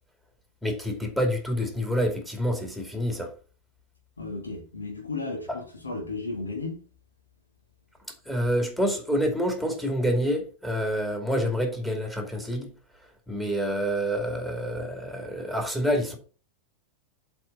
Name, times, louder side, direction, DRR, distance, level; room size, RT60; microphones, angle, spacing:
voice 1, 0.6-3.3 8.3-12.7 13.3-16.2, equal, 5° left, 2.5 m, -27 dB
voice 2, 4.2-6.8, left 3 dB, 75° left, 1.7 m, -34 dB
7.7 x 4.4 x 6.2 m
figure-of-eight pair, 90°, 0 cm